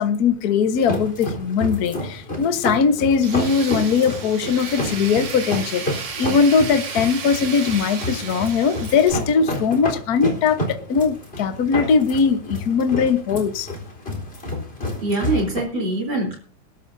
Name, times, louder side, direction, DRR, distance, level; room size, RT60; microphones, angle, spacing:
voice 1, 0.0-13.7, left 6 dB, 55° left, 8 dB, 1.0 m, -20 dB
sound 1, 0.7-15.6, left 1 dB, 20° left, 4.0 m, -30 dB
Tools, 3.2-9.1, right 6 dB, 55° right, 2.6 m, -33 dB
voice 2, 15.0-16.4, right 2 dB, 40° right, 0 dB, 4.4 m, -23 dB
21.0 x 12.5 x 2.7 m, 0.41 s
omnidirectional pair, 3.4 m